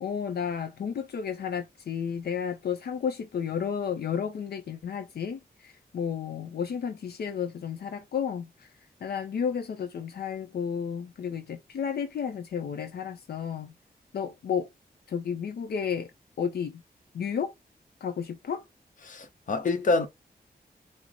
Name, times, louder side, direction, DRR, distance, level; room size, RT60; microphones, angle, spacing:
voice 1, 0.0-8.7 9.0-13.7 14.1-14.7 15.1-16.1 16.4-16.8 17.1-17.5 18.0-18.7, left 7 dB, 80° left, 0.5 m, -32 dB
voice 2, 19.0-20.1, left 3 dB, 55° left, 0.8 m, -26 dB
4.4 x 2.0 x 3.7 m
wide cardioid pair, 150°, 16 cm